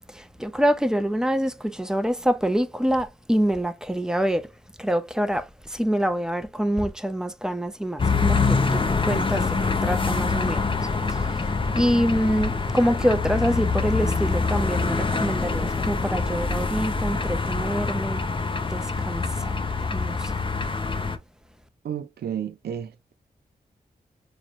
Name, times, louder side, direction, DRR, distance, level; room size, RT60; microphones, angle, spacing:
voice 1, 0.1-4.5 4.8-10.7 11.1-11.3 11.7-18.3 18.7-19.7 19.9-20.5, equal, 5° right, 0.7 m, -26 dB
sound 1, 8.0-21.2, left 4 dB, 30° left, 0.7 m, -25 dB
voice 2, 21.8-23.1, right 9 dB, 85° right, 0.5 m, -32 dB
3.9 x 3.1 x 2.6 m
cardioid pair, 55°, 16 cm